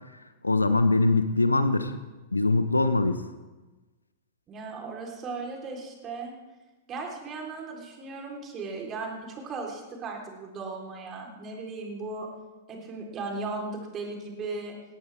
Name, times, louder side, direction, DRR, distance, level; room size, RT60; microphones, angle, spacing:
voice 1, 0.4-1.9 2.3-3.2, left 2 dB, 85° left, 11 dB, 1.0 m, -22 dB
voice 2, 4.5-6.3 6.9-12.3 12.7-14.8, right 3 dB, 25° right, 0 dB, 3.9 m, -37 dB
19.5 x 17.0 x 3.6 m, 1.2 s
figure-of-eight pair, 100°, 0 cm